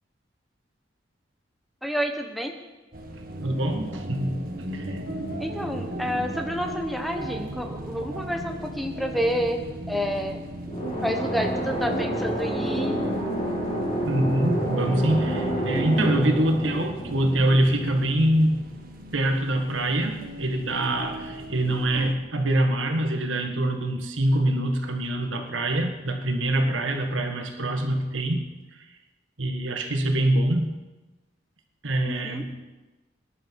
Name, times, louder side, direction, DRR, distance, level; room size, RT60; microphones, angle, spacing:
voice 1, 1.8-2.5 5.4-10.4 11.0-13.0 32.1-32.4, equal, ahead, 4 dB, 1.1 m, -29 dB
sound 1, 2.9-22.1, equal, 50° right, 1.6 m, -36 dB
voice 2, 3.4-4.5 4.7-5.0 14.0-18.6 19.1-28.5 29.4-30.7 31.8-32.5, right 1 dB, 90° right, 4 dB, 1.7 m, -24 dB
sound 2, 10.6-18.3, right 1 dB, 30° left, 5.5 m, -29 dB
20.0 x 11.0 x 4.7 m, 1.2 s
head